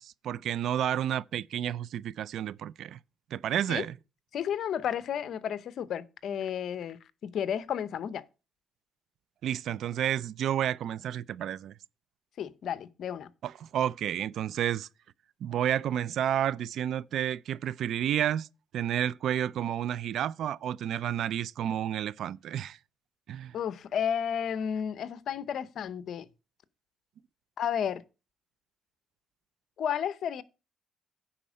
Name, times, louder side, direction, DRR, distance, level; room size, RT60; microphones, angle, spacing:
voice 1, 0.0-3.0 3.3-4.0 9.4-11.7 13.4-14.9 15.4-18.5 18.7-22.8 23.3-23.5, right 10 dB, 75° right, 0.4 m, -31 dB
voice 2, 4.3-8.2 12.4-13.3 23.5-26.3 27.6-28.0 29.8-30.4, left 8 dB, 70° left, 0.8 m, -32 dB
10.0 x 4.3 x 6.3 m
cardioid pair, 90°, 0 cm